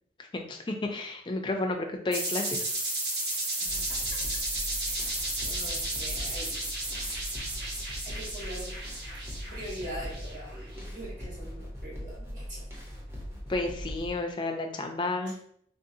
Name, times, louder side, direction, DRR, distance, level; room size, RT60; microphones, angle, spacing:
voice 1, 0.3-2.6 13.5-15.4, left 2 dB, 25° left, 3 dB, 0.4 m, -31 dB
sound 1, 2.1-10.6, right 2 dB, 75° right, 1.1 m, -33 dB
voice 2, 3.3-4.2 4.9-6.7 7.1-7.2 8.0-8.8 9.5-12.7 15.3-15.4, equal, 45° right, -5 dB, 1.2 m, -43 dB
sound 2, 3.7-14.1, equal, 15° right, 0.7 m, -40 dB
3.7 x 2.6 x 2.6 m, 0.66 s
head